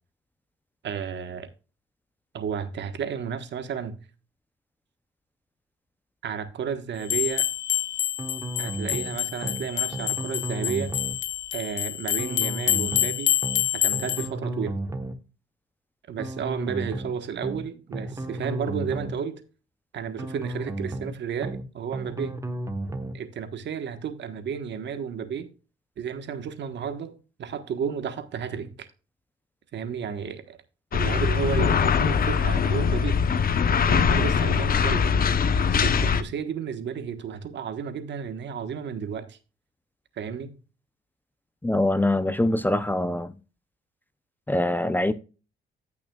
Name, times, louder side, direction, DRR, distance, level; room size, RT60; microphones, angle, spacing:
voice 1, 0.8-1.5 2.3-4.0 6.2-7.4 8.6-10.9 11.5-13.3 13.7-14.8 16.1-19.4 19.9-22.3 23.1-25.5 26.0-28.9 29.7-30.6 30.9-33.2 33.8-35.1 35.6-39.4 40.2-40.6, right 7 dB, 65° right, 1.4 m, -32 dB
sound 1, 7.1-14.3, left 14 dB, 70° left, 0.5 m, -27 dB
sound 2, 8.2-9.1 9.4-9.6 9.9-11.2 12.2-13.1 13.4-13.6 13.9-15.2 16.2-17.1 17.4-17.6 17.9-19.2 20.2-21.1 21.4-21.6 21.9-23.2, right 1 dB, 15° right, 1.2 m, -33 dB
sound 3, 30.9-36.2, left 6 dB, 45° left, 0.9 m, -22 dB
voice 2, 41.6-43.3 44.5-45.1, left 1 dB, 10° left, 0.6 m, -23 dB
15.5 x 6.1 x 2.4 m
cardioid pair, 90°, 20 cm